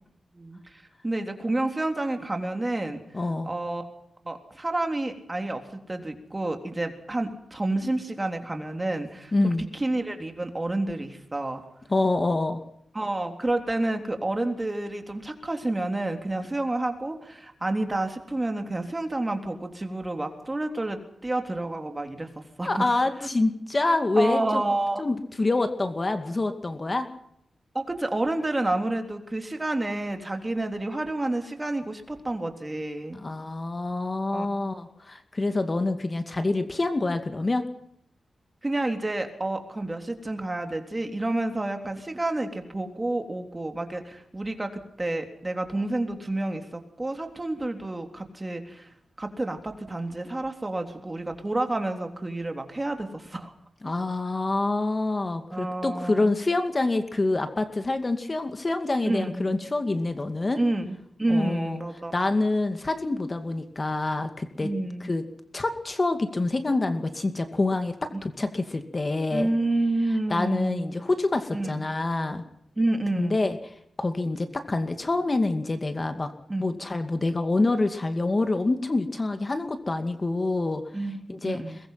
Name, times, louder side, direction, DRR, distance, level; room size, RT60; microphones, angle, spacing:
voice 1, 0.3-3.0 3.4-3.8 4.2-5.6 5.9-11.6 12.9-22.9 23.2-23.3 24.2-25.0 27.7-33.2 34.3-34.5 38.6-48.9 49.2-53.5 55.5-56.3 59.0-59.6 60.6-62.2 64.6-65.1 68.1-68.2 69.3-70.9 71.5-71.9 72.8-73.5 76.5-76.7 80.9-81.8, right 2 dB, 20° right, 6 dB, 3.5 m, -29 dB
voice 2, 3.1-3.5 9.3-9.6 11.9-12.6 22.7-24.6 25.0-27.1 33.1-37.7 53.8-60.6 61.3-61.8 62.1-64.7 65.0-65.2 65.5-69.5 70.3-72.4 73.1-73.6 74.0-76.3 76.6-80.8 81.3-81.6, left 2 dB, 30° left, 8 dB, 2.4 m, -26 dB
23.5 x 21.0 x 5.9 m, 0.75 s
wide cardioid pair, 85°, 0 cm